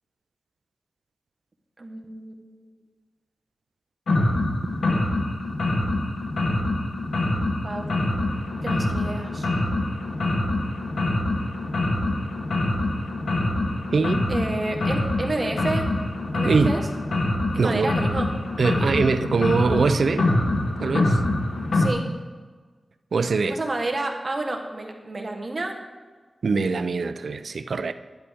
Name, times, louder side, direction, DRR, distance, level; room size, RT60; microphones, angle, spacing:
voice 1, 1.8-2.8 7.6-7.9 8.6-9.5 14.3-15.9 16.3-16.9 17.5-18.3 21.7-22.1 23.5-25.8, right 2 dB, 35° right, 2 dB, 1.3 m, -30 dB
sound 1, 4.1-21.9, left 2 dB, 90° left, 1.3 m, -25 dB
voice 2, 13.9-14.3 16.4-16.8 17.6-17.9 18.6-20.3 20.8-21.2 23.1-23.6 26.4-27.9, right 4 dB, 70° right, 11 dB, 0.5 m, -22 dB
11.5 x 9.8 x 3.6 m, 1.4 s
wide cardioid pair, 105°, 0 cm